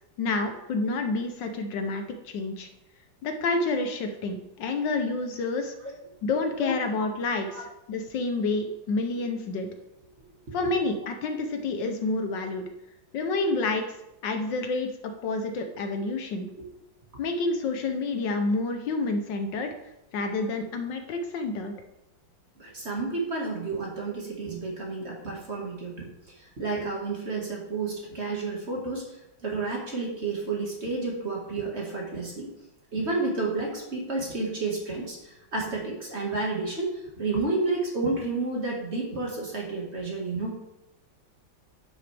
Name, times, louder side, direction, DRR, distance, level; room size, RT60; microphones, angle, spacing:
voice 1, 0.2-2.7 3.2-5.7 6.2-9.7 10.5-12.6 13.1-13.8 14.2-16.5 17.2-19.7 20.1-21.7, left 3 dB, 70° left, 6 dB, 1.5 m, -29 dB
voice 2, 22.6-29.0 29.4-32.5 32.9-40.6, right 3 dB, 35° right, -2 dB, 2.0 m, -31 dB
10.0 x 6.3 x 3.4 m, 0.91 s
omnidirectional pair, 2.1 m